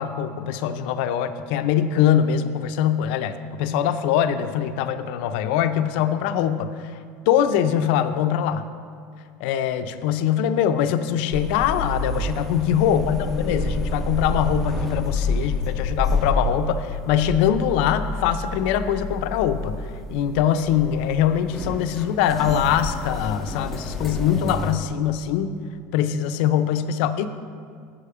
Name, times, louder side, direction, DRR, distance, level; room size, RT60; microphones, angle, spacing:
voice 1, 0.0-6.8 7.3-8.6 9.4-19.7 20.1-25.6 25.9-27.3, left 9 dB, 70° left, 9 dB, 0.5 m, -22 dB
sound 1, 11.3-24.7, left 2 dB, 5° left, 0.5 m, -29 dB
7.5 x 4.9 x 6.8 m, 2.2 s
cardioid pair, 175°, 6 cm